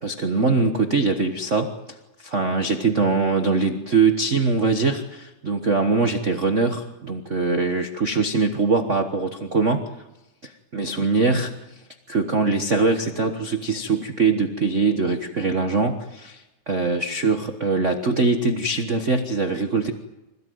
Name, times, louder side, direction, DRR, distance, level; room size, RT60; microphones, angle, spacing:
voice 1, 0.0-1.7 2.2-9.9 10.4-11.6 12.1-19.9, right 4 dB, 80° right, 5 dB, 0.6 m, -22 dB
26.0 x 17.0 x 9.4 m, 1.0 s
omnidirectional pair, 3.6 m